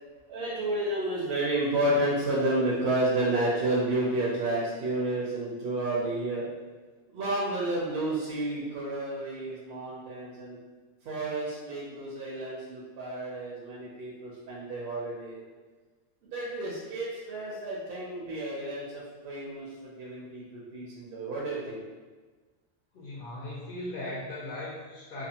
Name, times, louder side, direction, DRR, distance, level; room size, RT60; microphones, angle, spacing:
voice 1, 0.3-6.5 7.1-10.6 11.0-15.5 16.2-21.8, right 1 dB, 65° right, -5 dB, 0.7 m, -31 dB
voice 2, 22.9-25.3, left 1 dB, 60° left, -6 dB, 0.7 m, -38 dB
2.5 x 2.2 x 2.7 m, 1.3 s
omnidirectional pair, 1.2 m